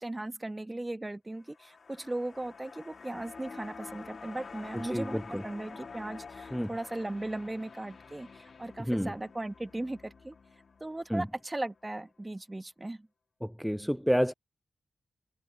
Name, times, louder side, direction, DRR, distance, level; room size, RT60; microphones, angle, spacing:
voice 1, 0.0-10.3 10.8-13.1, right 2 dB, 20° right, 1.4 m, -37 dB
sound 1, 1.4-11.8 12.1-12.2, left 5 dB, 60° left, 2.1 m, -48 dB
voice 2, 4.7-5.4 6.5-6.7 8.8-9.1 11.1-11.3 13.4-14.3, equal, ahead, 0.4 m, -29 dB
cardioid pair, 50°, 0 cm